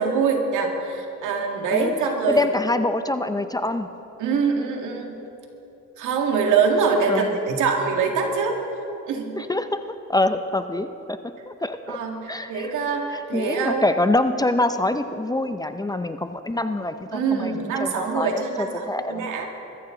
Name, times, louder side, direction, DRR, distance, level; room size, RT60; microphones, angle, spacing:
voice 1, 0.0-2.5 4.2-5.2 6.0-8.6 9.1-9.4 11.9-13.8 17.1-19.5, right 5 dB, 85° right, 2 dB, 2.2 m, -24 dB
voice 2, 2.3-3.9 7.1-7.4 9.4-9.8 10.1-11.2 11.5-12.0 12.3-12.7 13.1-17.5 17.8-19.3, left 2 dB, 15° left, 9 dB, 0.6 m, -25 dB
22.0 x 14.0 x 3.9 m, 2.9 s
cardioid pair, 90°, 30 cm